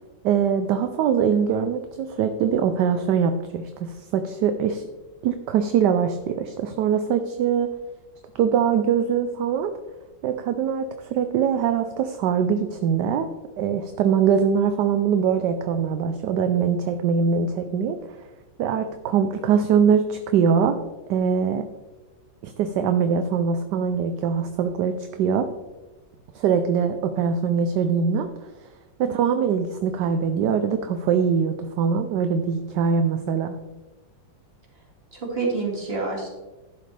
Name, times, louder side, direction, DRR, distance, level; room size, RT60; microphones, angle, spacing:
voice 1, 0.2-4.8 5.2-7.7 8.4-9.7 10.2-13.3 13.6-18.2 18.6-20.8 21.1-21.6 22.4-24.9 25.2-25.5 26.3-28.3 29.0-33.6, right 7 dB, 70° right, 8 dB, 1.2 m, -22 dB
voice 2, 29.0-29.3 35.1-36.3, right 3 dB, 30° right, -1 dB, 2.4 m, -28 dB
11.0 x 7.7 x 3.3 m, 1.1 s
omnidirectional pair, 2.1 m